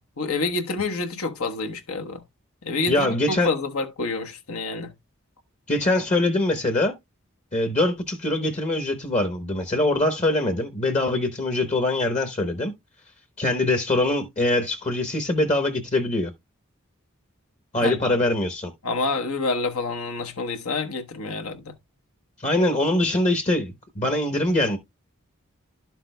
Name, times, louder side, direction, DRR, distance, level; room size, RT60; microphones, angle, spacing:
voice 1, 0.0-2.2 2.6-4.9 17.8-18.2 18.8-21.7, left 3 dB, 75° left, 1.1 m, -28 dB
voice 2, 2.9-3.5 5.7-6.9 7.5-12.7 13.4-16.3 17.7-18.7 22.4-24.8, left 2 dB, 30° left, 0.9 m, -23 dB
11.5 x 5.9 x 2.3 m
head